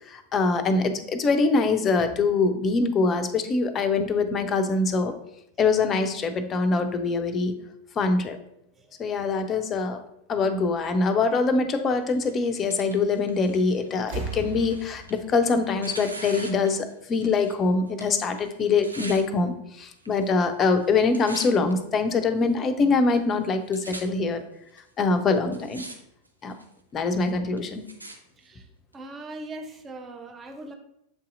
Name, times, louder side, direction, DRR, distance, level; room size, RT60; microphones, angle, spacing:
voice 1, 0.1-5.1 5.6-7.6 8.0-8.4 9.0-10.0 10.3-24.4 25.0-25.8 26.4-26.6 26.9-27.9, left 4 dB, 25° left, 8 dB, 0.5 m, -24 dB
Tearing, 12.1-17.6 17.9-19.2 20.0-20.5 20.8-21.7 22.4-22.5 23.2-23.3 23.4-24.0 24.8-24.9 25.4-26.0 26.3-26.7 27.3-28.2 28.9-29.0, right 2 dB, 85° right, 0.6 m, -42 dB
sound 1, 13.4-13.7 14.0-16.7 17.9-18.0, right 3 dB, 60° right, 1.5 m, -38 dB
voice 2, 28.4-28.7 28.9-30.7, right 2 dB, 20° right, 4 dB, 0.6 m, -40 dB
7.2 x 2.7 x 2.5 m, 0.79 s
figure-of-eight pair, 90°, 0 cm